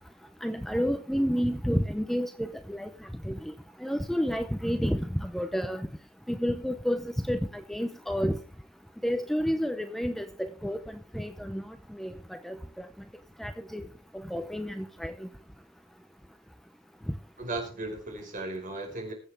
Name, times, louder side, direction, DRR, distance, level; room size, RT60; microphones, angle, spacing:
voice 1, 0.4-2.9 3.2-3.5 3.8-5.9 6.3-7.4 7.7-8.4 9.0-12.9 13.4-13.9 14.1-15.3, equal, ahead, 0.6 m, -30 dB
voice 2, 17.4-19.1, right 2 dB, 45° right, 4.9 m, -36 dB
22.0 x 7.9 x 3.5 m
head